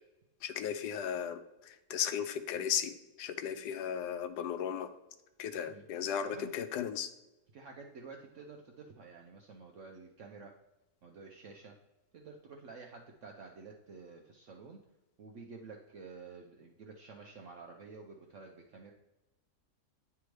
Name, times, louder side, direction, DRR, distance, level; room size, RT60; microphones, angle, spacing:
voice 1, 0.4-4.9 5.4-7.1, left 8 dB, 90° left, 9 dB, 1.2 m, -36 dB
voice 2, 6.2-6.5 7.5-10.5 11.0-11.7 12.1-14.8 15.2-18.9, right 4 dB, 60° right, 1 dB, 0.9 m, -50 dB
10.0 x 3.4 x 3.2 m, 1.0 s
omnidirectional pair, 1.7 m